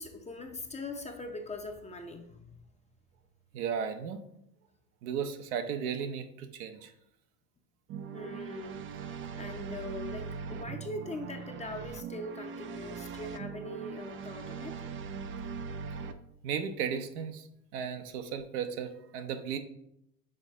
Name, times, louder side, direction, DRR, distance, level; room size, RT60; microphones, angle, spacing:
voice 1, 0.0-2.6 8.1-14.8, left 2 dB, 15° left, 4 dB, 0.6 m, -42 dB
voice 2, 3.5-4.2 5.0-6.9 16.4-17.4 17.7-19.6, right 7 dB, 75° right, 7 dB, 0.8 m, -35 dB
sound 1, 7.9-16.1, right 6 dB, 30° right, 0.3 m, -40 dB
6.4 x 4.1 x 3.6 m, 0.77 s
hypercardioid pair, 90°, 46 cm